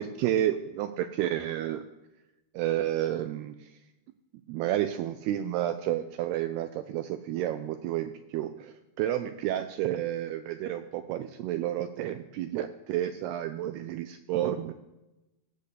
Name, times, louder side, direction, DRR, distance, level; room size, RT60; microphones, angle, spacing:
voice 1, 0.0-1.9 2.5-3.7 4.5-14.7, right 12 dB, 85° right, 9 dB, 2.3 m, -31 dB
18.5 x 8.5 x 8.4 m, 1.0 s
omnidirectional pair, 5.4 m